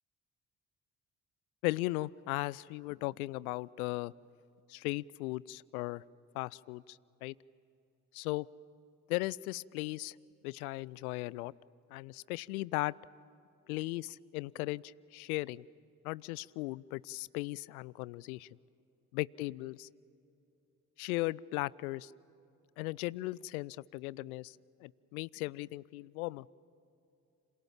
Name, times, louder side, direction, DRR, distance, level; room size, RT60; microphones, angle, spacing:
voice 1, 1.6-4.1 4.7-6.0 6.3-7.3 8.1-8.5 9.1-10.2 10.4-11.5 11.9-12.9 13.7-15.6 16.0-18.5 19.1-19.9 21.0-22.1 22.8-24.6 24.8-26.5, left 20 dB, 75° left, 23 dB, 0.5 m, -37 dB
29.5 x 27.0 x 7.3 m, 2.8 s
figure-of-eight pair, 40°, 45 cm